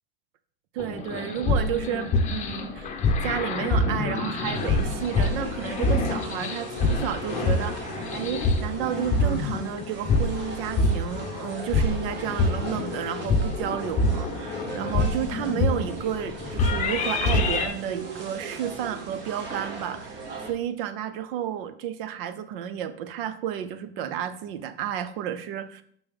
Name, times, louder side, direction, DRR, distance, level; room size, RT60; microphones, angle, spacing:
voice 1, 0.7-3.0 3.2-25.8, right 10 dB, 65° right, 12 dB, 0.7 m, -32 dB
sound 1, 0.8-17.7, left 2 dB, 25° left, 0.7 m, -26 dB
sound 2, 4.5-20.5, right 3 dB, 35° right, 1.2 m, -39 dB
6.1 x 5.2 x 3.5 m, 0.65 s
supercardioid pair, 140°, 30 cm